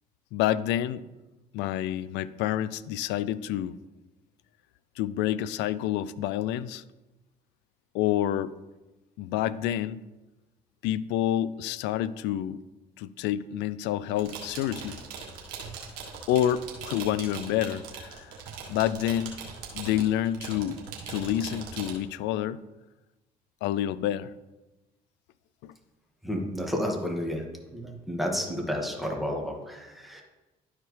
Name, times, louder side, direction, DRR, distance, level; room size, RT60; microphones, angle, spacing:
voice 1, 0.3-1.0 1.5-3.8 5.0-6.8 7.9-8.5 9.2-10.0 10.8-12.6 13.0-15.0 16.3-18.3 18.7-19.3 19.7-22.6 23.6-24.3 25.6-25.7, left 12 dB, 70° left, 17 dB, 0.4 m, -28 dB
sound 1, 14.1-21.9, right 6 dB, 85° right, 1.5 m, -41 dB
voice 2, 26.2-27.5 27.7-30.2, equal, ahead, 1 dB, 1.9 m, -31 dB
12.0 x 4.8 x 3.3 m, 1.1 s
hypercardioid pair, 55°, 19 cm